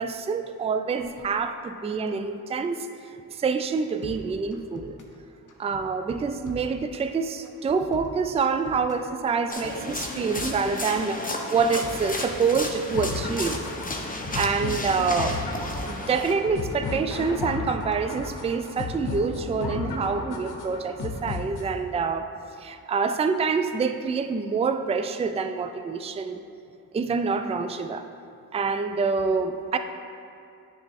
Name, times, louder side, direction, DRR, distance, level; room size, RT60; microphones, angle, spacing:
voice 1, 0.0-2.9 3.3-5.0 5.6-13.6 14.3-15.4 15.8-22.3 22.6-26.4 26.9-28.1 28.5-29.8, right 5 dB, 15° right, 8 dB, 0.3 m, -26 dB
sound 1, 4.0-5.2 5.5-7.1 7.4-9.1 9.4-11.0 11.3-13.0 13.3-14.9 15.2-16.9 17.2-18.8 19.1-19.6, left 3 dB, 55° left, 1.0 m, -43 dB
sound 2, 9.5-16.3, left 2 dB, 20° left, 0.9 m, -33 dB
sound 3, 12.9-21.9, left 3 dB, 75° left, 0.8 m, -34 dB
9.5 x 3.5 x 4.2 m, 2.5 s
cardioid pair, 50°, 38 cm